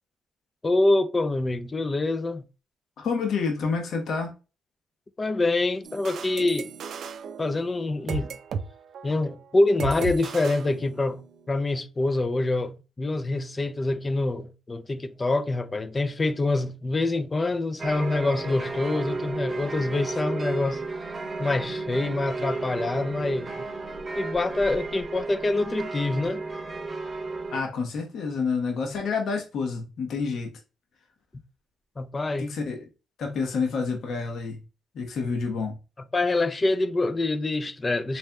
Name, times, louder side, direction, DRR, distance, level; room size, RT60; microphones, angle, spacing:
voice 1, 0.6-2.4 5.2-6.7 7.4-8.3 9.0-11.2 11.5-20.8 21.4-23.7 24.2-26.4 32.0-32.5 36.1-38.2, left 2 dB, 25° left, 0.4 m, -25 dB
voice 2, 3.0-4.3 27.5-30.5 32.4-32.9 33.2-34.6 34.9-35.8, left 5 dB, 65° left, 0.9 m, -28 dB
sound 1, 5.8-8.7 8.9-9.2 9.8-11.3, right 5 dB, 65° right, 0.4 m, -35 dB
sound 2, 17.8-27.6, right 3 dB, 40° right, 0.8 m, -33 dB
4.2 x 3.3 x 2.2 m
cardioid pair, 90°, 0 cm